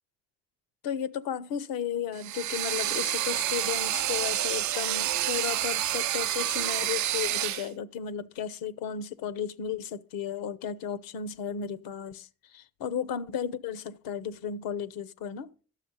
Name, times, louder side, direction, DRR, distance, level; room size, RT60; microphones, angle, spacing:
voice 1, 0.8-15.5, left 8 dB, 85° left, 0.8 m, -34 dB
sound 1, 2.2-7.7, right 13 dB, 60° right, 0.5 m, -29 dB
12.0 x 7.2 x 5.5 m
supercardioid pair, 65°, 34 cm